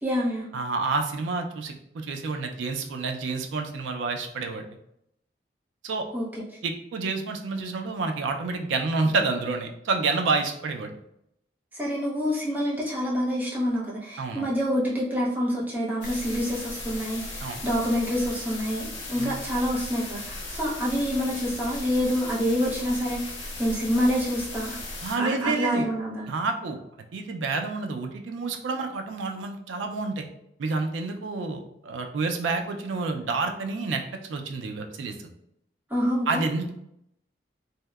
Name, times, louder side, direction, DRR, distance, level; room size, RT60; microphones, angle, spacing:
voice 1, 0.0-0.5 6.1-6.3 11.7-23.3 23.6-24.8 25.2-26.3 35.9-36.4, equal, 10° right, -6 dB, 0.5 m, -27 dB
voice 2, 0.5-4.7 5.8-6.0 6.6-11.0 14.2-14.5 17.4-17.6 19.2-19.3 25.0-25.9 26.3-26.8 27.1-30.2 30.6-34.0 34.3-35.1 36.3-36.7, right 3 dB, 90° right, 5 dB, 0.4 m, -29 dB
sound 1, 16.0-25.2, left 2 dB, 80° left, 0.8 m, -37 dB
2.7 x 2.0 x 2.2 m, 0.76 s
head